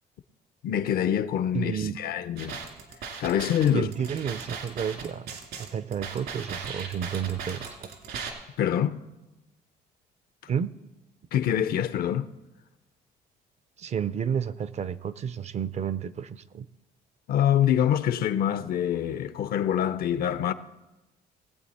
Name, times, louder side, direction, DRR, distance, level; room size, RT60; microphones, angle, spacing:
voice 1, 0.6-2.6 3.2-3.9 8.6-9.0 11.3-12.3 17.3-20.5, left 10 dB, 65° left, 0.6 m, -25 dB
voice 2, 1.5-2.0 3.7-7.8 10.5-10.7 13.8-16.7, right 8 dB, 40° right, 0.5 m, -31 dB
sound 1, 2.4-8.3, right 6 dB, 75° right, 2.4 m, -38 dB
19.5 x 8.2 x 4.2 m
cardioid pair, 110°, 17 cm